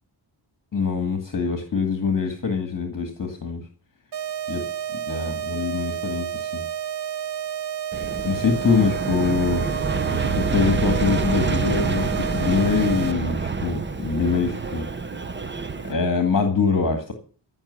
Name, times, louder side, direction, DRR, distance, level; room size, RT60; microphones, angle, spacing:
voice 1, 0.7-3.7 4.5-4.6 5.1-6.6 8.2-9.7 10.4-14.9 15.8-17.1, left 5 dB, 45° left, 6 dB, 1.9 m, -24 dB
sound 1, 4.1-13.1, right 9 dB, 65° right, 0.6 m, -30 dB
Aircraft, 7.9-15.9, right 4 dB, 25° right, 0.8 m, -27 dB
15.0 x 6.0 x 8.1 m, 0.40 s
wide cardioid pair, 155°, 44 cm